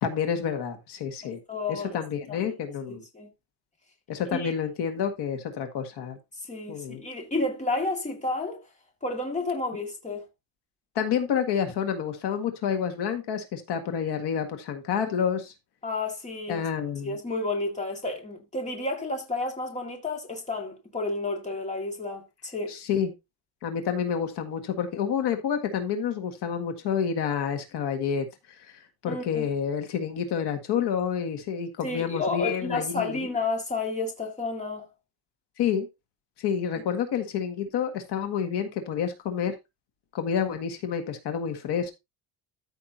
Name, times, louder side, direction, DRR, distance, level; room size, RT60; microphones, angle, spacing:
voice 1, 0.0-1.4 1.7-3.0 4.1-6.2 6.7-7.0 11.0-15.5 16.5-17.2 22.7-23.1 23.6-28.3 28.7-33.3 35.6-35.9 36.4-39.5 40.1-41.9, left 7 dB, 65° left, 1.9 m, -29 dB
voice 2, 1.2-2.0 2.3-2.5 2.9-3.3 4.3-4.5 6.5-8.6 9.0-10.3 15.8-16.6 17.0-22.8 29.1-29.4 31.8-34.9, left 3 dB, 15° left, 2.2 m, -31 dB
13.5 x 5.9 x 2.8 m
cardioid pair, 170°, 43 cm